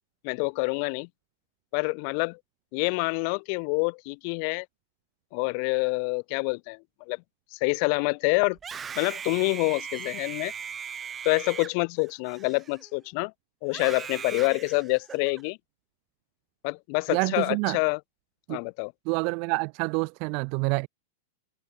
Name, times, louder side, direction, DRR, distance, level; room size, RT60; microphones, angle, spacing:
voice 1, 0.2-1.1 1.7-2.4 2.7-4.7 5.3-6.8 7.1-7.2 7.5-8.6 9.0-10.5 11.2-13.3 13.6-15.6 16.6-18.0 18.5-18.9, left 40 dB or more, 45° left, 4.0 m, -27 dB
Screaming, 8.5-13.0 13.7-15.4, right 7 dB, 15° right, 5.7 m, -39 dB
voice 2, 17.1-17.8 18.5-18.6 19.1-20.9, right 36 dB, 40° right, 1.9 m, -27 dB
supercardioid pair, 155°, 0 cm